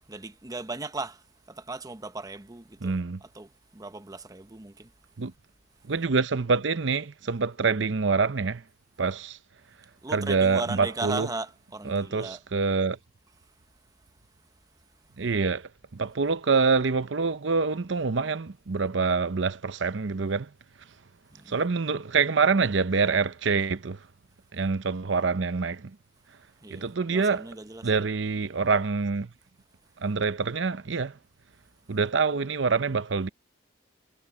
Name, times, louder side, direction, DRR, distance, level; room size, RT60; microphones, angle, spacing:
voice 1, 0.1-2.9 3.2-4.9 10.0-12.4 21.3-21.6 26.6-28.0, right 3 dB, 20° right, 0.8 m, -37 dB
voice 2, 2.8-3.2 5.2-5.3 5.9-8.6 9.0-9.4 10.1-11.3 11.9-13.0 15.2-20.5 21.5-24.0 24.5-25.9 26.7-27.5 27.8-29.3 30.0-31.2 31.9-33.3, right 4 dB, 65° right, 0.7 m, -26 dB
head